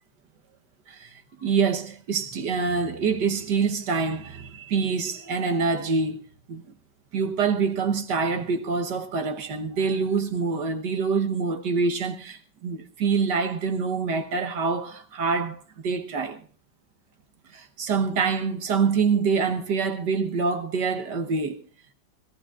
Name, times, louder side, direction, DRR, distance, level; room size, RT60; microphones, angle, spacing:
voice 1, 0.9-6.2 6.5-6.6 7.1-16.4 17.5-21.6, right 5 dB, 65° right, 1.7 m, -26 dB
26.5 x 17.5 x 2.4 m
omnidirectional pair, 2.0 m